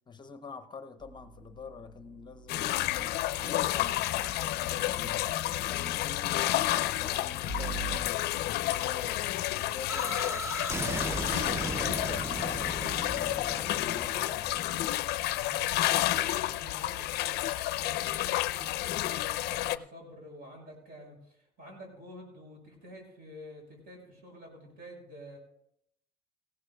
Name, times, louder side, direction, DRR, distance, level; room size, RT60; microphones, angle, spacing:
voice 1, 0.1-10.6 11.0-14.6, left 5 dB, 25° left, 8 dB, 0.7 m, -46 dB
sound 1, 1.0-5.4 7.5-8.0, right 4 dB, 50° right, 1.0 m, -45 dB
sound 2, 2.5-19.8, left 15 dB, 75° left, 0.4 m, -30 dB
sound 3, 9.9-15.6, right 2 dB, 15° right, 0.6 m, -37 dB
voice 2, 15.3-25.4, equal, 65° right, 0 dB, 6.5 m, -49 dB
18.5 x 15.5 x 2.3 m, 0.76 s
cardioid pair, 110°, 17 cm